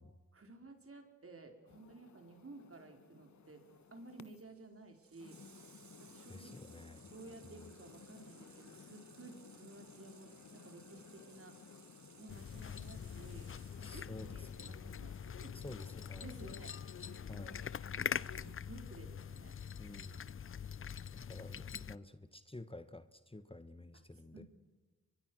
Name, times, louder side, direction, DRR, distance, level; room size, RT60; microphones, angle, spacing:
voice 1, 0.3-3.6 3.9-5.5 6.0-6.6 7.1-11.6 12.2-15.7 16.2-17.5 17.8-19.6 24.3-24.4, right 2 dB, 50° right, 5 dB, 4.6 m, -55 dB
sound 1, 1.7-4.4 5.2-18.6, left 6 dB, 70° left, 1.5 m, -57 dB
Water tap faucet / Sink (filling or washing), 3.5-15.3 16.6-16.7, right 7 dB, 70° right, 1.9 m, -63 dB
voice 2, 6.3-7.1 7.4-7.5 13.8-15.0 15.6-16.4 17.3-17.6 19.8-20.3 21.3-24.4, left 2 dB, 20° left, 12 dB, 1.5 m, -51 dB
Cat Eating Dry Food, 12.3-22.0, left 7 dB, 45° left, 0.6 m, -44 dB
24.0 x 22.0 x 6.4 m, 1.3 s
supercardioid pair, 40°, 30 cm